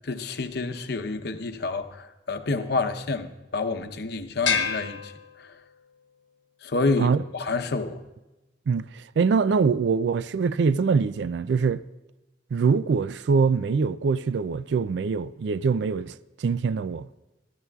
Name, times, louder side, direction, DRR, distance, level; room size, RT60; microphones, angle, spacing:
voice 1, 0.0-5.1 5.4-5.6 6.6-8.0, left 3 dB, 60° left, 0.8 m, -29 dB
sound 1, 4.4-5.9, left 6 dB, 90° left, 1.1 m, -29 dB
voice 2, 8.7-11.8 12.5-17.1, right 5 dB, 65° right, 0.3 m, -24 dB
25.0 x 14.0 x 2.3 m
head